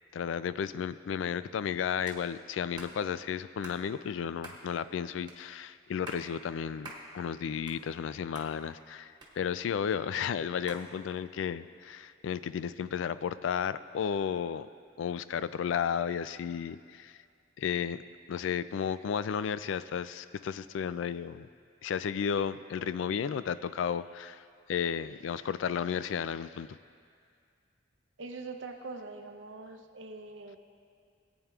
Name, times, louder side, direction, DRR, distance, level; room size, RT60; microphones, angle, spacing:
voice 1, 0.1-14.7 15.0-17.2 17.6-18.0 18.3-21.5 21.8-26.7, left 7 dB, 85° left, 15 dB, 0.3 m, -33 dB
sound 1, 2.0-2.2 2.8-2.9 3.6-3.8 4.4-4.6 5.3-5.4 5.9-6.3 6.8-7.0 7.4-8.1 8.3-8.5 9.2-9.8 10.7-10.9, right 2 dB, 25° right, 1.2 m, -46 dB
voice 2, 28.2-30.6, right 3 dB, 85° right, 5 dB, 0.7 m, -43 dB
18.0 x 8.8 x 2.4 m, 2.2 s
head